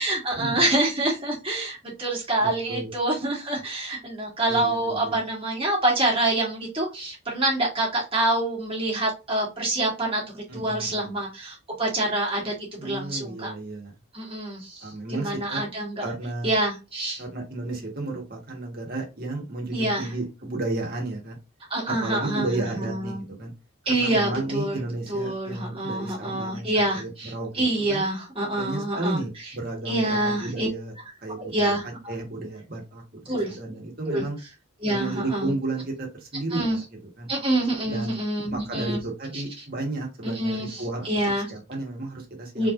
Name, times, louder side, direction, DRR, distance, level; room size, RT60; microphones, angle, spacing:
voice 1, 0.0-13.5 14.1-14.9 15.2-16.0 16.4-17.2 19.7-20.1 21.7-23.2 23.9-24.8 25.1-29.2 29.9-30.7 31.5-31.8 33.3-33.6 34.1-34.2 34.8-35.5 36.5-36.8 37.3-39.0 39.3-39.4 40.4-40.7 41.0-41.5 42.6-42.7, right 1 dB, 25° right, 1.9 m, -26 dB
voice 2, 2.4-2.9 4.5-5.2 10.5-11.2 12.8-13.9 14.8-15.6 16.0-16.6 17.2-21.4 21.9-23.5 23.9-28.0 28.5-30.9 31.2-34.4 34.9-37.3 37.9-38.1 38.5-42.7, right 2 dB, 45° right, 1.6 m, -33 dB
4.4 x 3.3 x 2.6 m
head